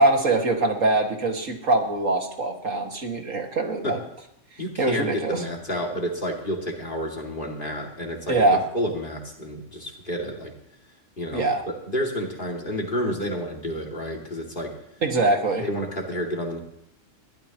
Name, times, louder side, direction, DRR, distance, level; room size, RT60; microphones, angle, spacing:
voice 1, 0.0-4.0 4.8-5.4 8.3-8.6 11.3-11.6 15.0-15.6, right 2 dB, 75° right, 2 dB, 2.4 m, -23 dB
voice 2, 4.6-8.4 8.7-10.5 11.2-14.7 15.6-16.6, equal, 40° left, -1 dB, 2.8 m, -30 dB
22.0 x 15.0 x 3.0 m, 0.78 s
omnidirectional pair, 1.3 m